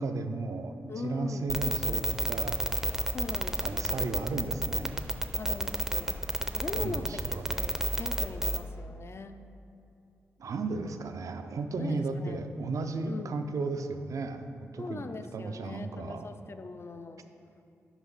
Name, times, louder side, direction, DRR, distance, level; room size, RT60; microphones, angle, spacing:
voice 1, 0.0-2.6 3.6-5.0 6.8-7.6 10.4-16.3, right 3 dB, 60° right, 8 dB, 0.4 m, -35 dB
voice 2, 0.9-1.5 3.1-4.1 5.4-9.4 11.8-12.4 13.1-13.4 14.8-17.3, left 3 dB, 45° left, 8 dB, 0.4 m, -41 dB
sound 1, 1.5-8.6, right 1 dB, 5° right, 0.5 m, -29 dB
6.0 x 5.1 x 4.0 m, 2.7 s
supercardioid pair, 40°, 6 cm